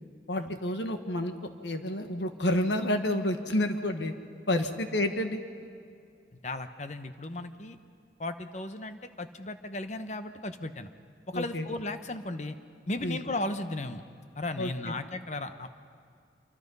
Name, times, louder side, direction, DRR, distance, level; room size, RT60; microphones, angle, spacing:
voice 1, 0.3-1.3 1.6-4.1 4.5-5.4 11.3-11.7 13.0-13.2 14.6-14.7, left 1 dB, 85° left, 7 dB, 1.6 m, -29 dB
voice 2, 6.4-7.8 8.2-10.9 11.3-12.6 12.9-14.0 14.4-15.7, left 2 dB, 40° left, 9 dB, 1.0 m, -36 dB
26.5 x 24.5 x 5.5 m, 2.3 s
head